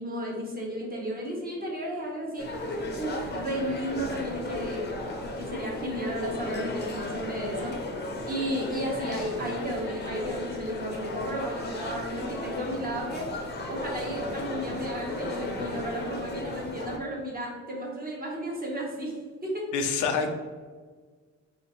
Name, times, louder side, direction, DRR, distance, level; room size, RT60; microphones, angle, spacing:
voice 1, 0.0-2.7 3.0-4.9 5.4-7.8 8.3-13.3 13.7-19.2 19.4-19.7 20.2-20.3, right 1 dB, 30° right, -2 dB, 1.1 m, -33 dB
sound 1, 2.4-17.0, left 2 dB, 35° left, 0.7 m, -35 dB
voice 2, 19.7-20.3, left 5 dB, 85° left, 5 dB, 0.5 m, -26 dB
3.8 x 2.7 x 2.9 m, 1.5 s
cardioid pair, 90°, 30 cm